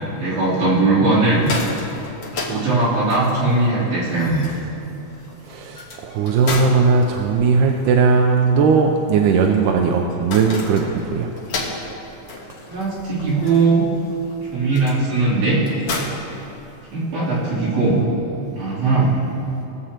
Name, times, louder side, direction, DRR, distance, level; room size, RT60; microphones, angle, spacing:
voice 1, 0.1-1.5 2.4-4.4 12.7-13.8 14.5-15.6 16.9-18.0 18.6-19.2, right 3 dB, 75° right, -10 dB, 4.4 m, -19 dB
sound 1, 1.2-17.1, left 3 dB, 60° left, 1.3 m, -34 dB
voice 2, 5.4-11.3, right 5 dB, 90° right, 2 dB, 2.2 m, -18 dB
20.5 x 7.4 x 2.9 m, 2.9 s
omnidirectional pair, 3.6 m